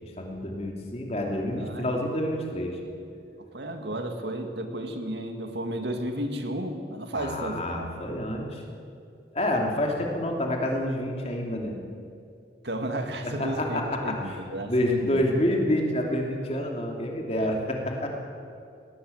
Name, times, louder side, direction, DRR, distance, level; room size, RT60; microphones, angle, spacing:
voice 1, 0.0-2.8 7.2-8.6 9.3-11.8 13.2-14.4 14.7-18.1, left 1 dB, 35° left, 1 dB, 2.9 m, -28 dB
voice 2, 1.6-1.9 3.5-8.1 12.6-15.3, right 1 dB, 75° right, 5 dB, 2.1 m, -33 dB
19.0 x 18.5 x 8.0 m, 2.5 s
head